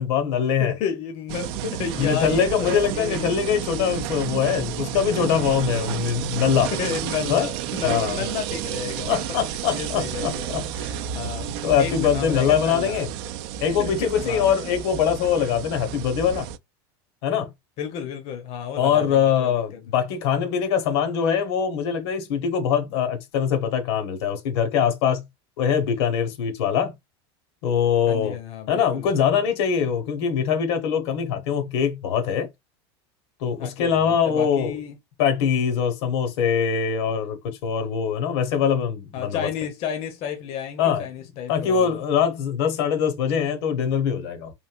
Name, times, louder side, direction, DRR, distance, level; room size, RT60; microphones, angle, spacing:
voice 1, 0.0-0.7 2.0-6.7 7.3-7.5 7.8-8.2 9.1-10.7 11.6-13.1 13.6-16.5 17.2-17.5 18.8-25.2 25.6-26.9 27.6-28.4 28.7-32.5 33.4-34.8 35.2-39.5 40.8-41.1 41.5-44.5, left 7 dB, 75° left, 1.0 m, -23 dB
voice 2, 0.6-3.3 3.8-3.9 6.7-9.1 9.7-11.5 11.8-13.0 13.8-14.5 17.8-19.8 28.1-29.1 33.6-35.0 39.1-42.0, left 8 dB, 50° left, 0.7 m, -32 dB
sound 1, 1.3-16.6, right 10 dB, 65° right, 0.4 m, -31 dB
3.2 x 2.7 x 2.4 m
supercardioid pair, 115°, 14 cm